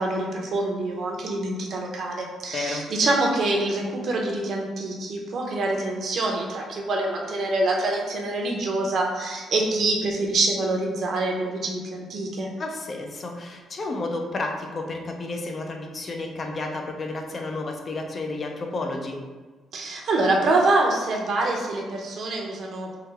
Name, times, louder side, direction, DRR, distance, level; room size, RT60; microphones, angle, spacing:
voice 1, 0.0-12.5 19.7-23.0, right 2 dB, 60° right, 0 dB, 0.6 m, -25 dB
voice 2, 2.5-2.8 12.6-19.2, left 2 dB, 40° left, 2 dB, 0.4 m, -31 dB
3.2 x 2.1 x 3.3 m, 1.4 s
cardioid pair, 105°, 0 cm